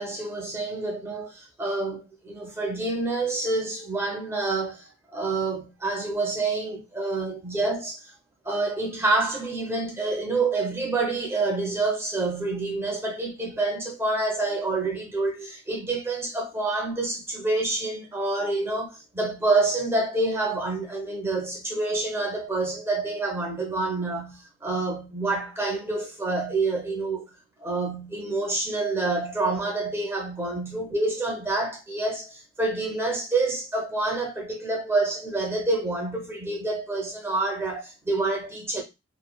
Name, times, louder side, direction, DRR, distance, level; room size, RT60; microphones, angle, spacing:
voice 1, 0.0-8.1 8.4-27.3 27.6-38.8, right 2 dB, 10° right, 0.6 m, -27 dB
3.0 x 2.2 x 2.2 m
head